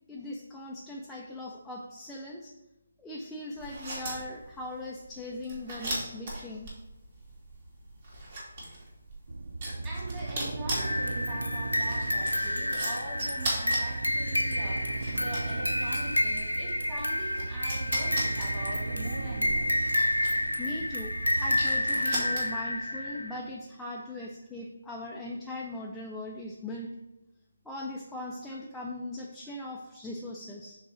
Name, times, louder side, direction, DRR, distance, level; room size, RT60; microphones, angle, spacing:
voice 1, 0.1-2.5 3.0-6.7 20.6-26.9 27.6-30.8, left 1 dB, 5° left, -3 dB, 0.4 m, -39 dB
sound 1, 3.6-22.8, right 1 dB, 40° right, 2.0 m, -39 dB
sound 2, 9.3-23.5, right 3 dB, 60° right, 0.4 m, -38 dB
voice 2, 9.8-19.8, right 1 dB, 15° right, -6 dB, 1.8 m, -42 dB
sound 3, 10.8-23.4, left 1 dB, 85° left, 0.5 m, -30 dB
6.0 x 4.0 x 4.8 m, 0.96 s
figure-of-eight pair, 150°, 0 cm